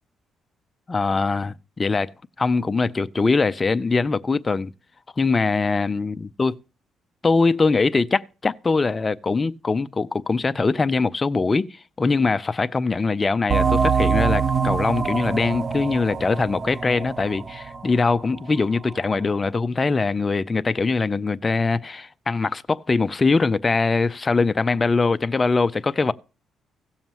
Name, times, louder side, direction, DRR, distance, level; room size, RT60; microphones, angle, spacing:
voice 1, 0.9-4.7 5.2-6.5 7.2-26.1, left 4 dB, 20° left, 0.5 m, -22 dB
sound 1, 13.5-18.8, right 6 dB, 30° right, 0.6 m, -24 dB
17.0 x 7.2 x 3.0 m
cardioid pair, 135°, 0 cm